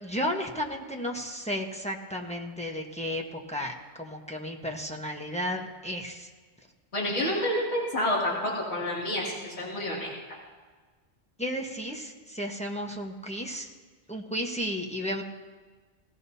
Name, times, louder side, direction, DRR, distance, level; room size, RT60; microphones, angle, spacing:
voice 1, 0.0-6.3 11.4-13.7 14.1-15.2, equal, 5° left, 0 dB, 1.1 m, -33 dB
voice 2, 6.9-10.1, left 1 dB, 70° left, -6 dB, 2.9 m, -29 dB
18.5 x 15.5 x 2.8 m, 1.4 s
omnidirectional pair, 1.2 m